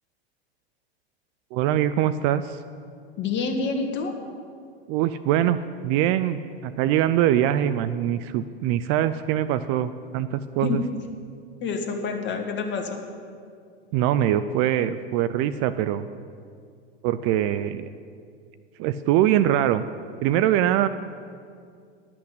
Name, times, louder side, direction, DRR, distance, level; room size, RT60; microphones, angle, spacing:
voice 1, 1.5-2.6 4.9-5.6 5.8-10.8 13.9-16.1 17.0-17.9 18.8-19.9 20.2-20.9, right 11 dB, 40° right, 13 dB, 0.4 m, -23 dB
voice 2, 3.2-4.1 10.6-10.8 11.6-13.0, left 4 dB, 35° left, 4 dB, 1.6 m, -27 dB
11.5 x 6.0 x 7.9 m, 2.3 s
hypercardioid pair, 100°, 32 cm